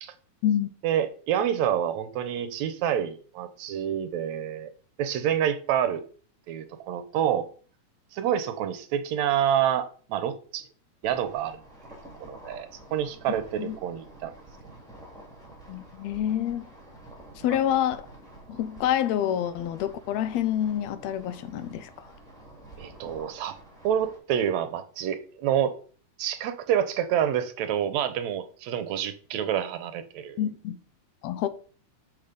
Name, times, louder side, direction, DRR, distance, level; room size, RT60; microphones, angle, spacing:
voice 1, 0.8-4.7 5.0-6.0 6.5-7.5 8.1-10.7 11.0-11.6 12.2-14.3 22.8-23.6 23.8-25.7 26.2-30.4, right 9 dB, 75° right, 1.9 m, -28 dB
sound 1, 11.0-24.2, right 1 dB, ahead, 2.5 m, -49 dB
voice 2, 15.7-16.7 17.4-18.1 18.5-22.1 30.4-30.8 31.2-31.5, left 10 dB, 75° left, 1.8 m, -27 dB
7.0 x 6.3 x 5.1 m
omnidirectional pair, 3.5 m